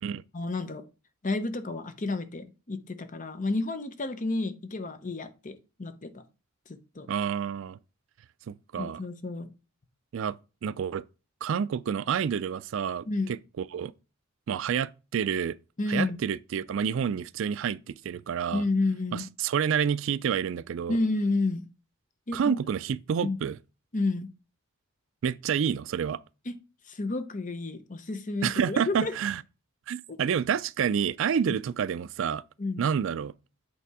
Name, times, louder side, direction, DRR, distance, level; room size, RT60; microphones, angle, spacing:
voice 1, 0.3-0.8 1.2-6.2 6.7-7.1 8.8-9.5 13.1-13.3 15.8-16.2 18.5-19.3 20.9-21.7 22.3-22.6 23.2-23.4 23.9-24.3 26.5-26.6 26.9-29.1 30.1-30.2 32.6-32.8, left 2 dB, 40° left, 0.8 m, -30 dB
voice 2, 7.1-7.8 8.5-9.0 10.1-11.0 11.4-13.9 14.5-15.6 15.9-18.6 19.1-21.0 22.3-23.6 25.2-26.2 28.4-29.4 29.9-32.4 32.8-33.3, right 7 dB, 65° right, 0.3 m, -29 dB
8.3 x 3.4 x 4.8 m
head